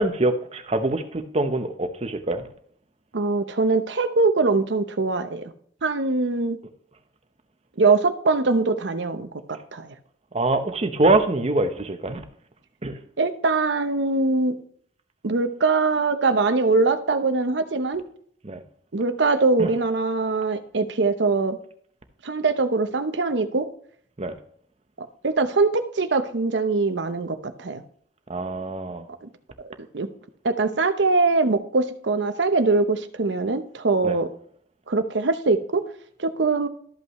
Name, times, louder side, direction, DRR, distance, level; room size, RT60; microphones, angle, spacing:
voice 1, 0.0-2.4 10.3-12.2 12.8-13.0 18.4-18.6 19.6-19.7 24.2-24.3 28.3-29.0 34.0-34.2, right 2 dB, 35° right, 8 dB, 0.8 m, -24 dB
voice 2, 3.1-5.4 5.8-6.6 7.8-9.9 13.2-14.6 15.2-18.0 18.9-21.6 22.2-23.7 25.0-27.8 29.2-29.3 29.9-30.1 30.4-34.3 34.9-35.8 36.2-36.7, right 3 dB, 75° right, 9 dB, 0.8 m, -22 dB
13.0 x 5.5 x 3.1 m, 0.63 s
head